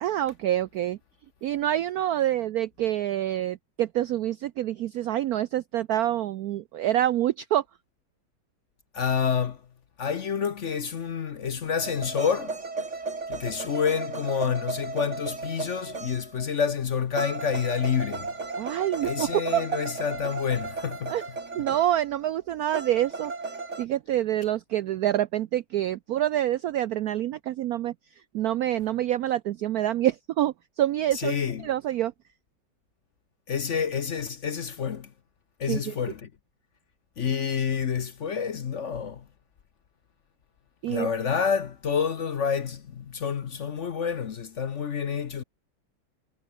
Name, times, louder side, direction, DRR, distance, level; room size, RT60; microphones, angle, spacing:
voice 1, 0.0-1.0 1.4-7.6 18.6-19.6 21.1-21.2 21.5-27.9 28.3-31.3 31.6-32.1 35.7-35.9 40.8-41.1, right 12 dB, 80° right, 0.8 m, -27 dB
voice 2, 8.9-9.6 10.0-12.6 13.3-18.3 19.0-21.1 31.1-31.7 33.5-35.1 35.6-36.3 37.2-39.2 40.9-45.4, left 7 dB, 50° left, 0.9 m, -28 dB
sound 1, 11.8-16.5 17.2-22.0 22.7-23.9, right 3 dB, 35° right, 2.9 m, -35 dB
omnidirectional pair, 2.2 m